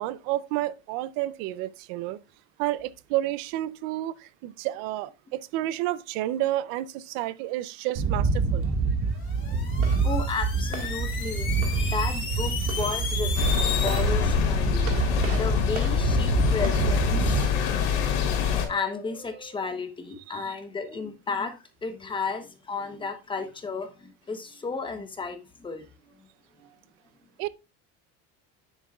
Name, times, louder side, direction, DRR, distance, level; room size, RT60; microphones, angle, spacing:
voice 1, 0.0-2.2 2.6-8.7 20.3-20.5 27.4-27.5, right 15 dB, 70° right, 0.6 m, -30 dB
sound 1, 8.0-17.4, right 4 dB, 40° right, 1.8 m, -27 dB
sound 2, 9.2-14.0, left 6 dB, 35° left, 3.4 m, -34 dB
voice 2, 9.4-11.5 11.7-25.9 26.2-26.3 26.6-26.7, left 4 dB, 15° left, 0.9 m, -34 dB
sound 3, 13.4-18.7, left 8 dB, 85° left, 3.5 m, -25 dB
9.9 x 8.0 x 2.4 m
cardioid pair, 165°, 34 cm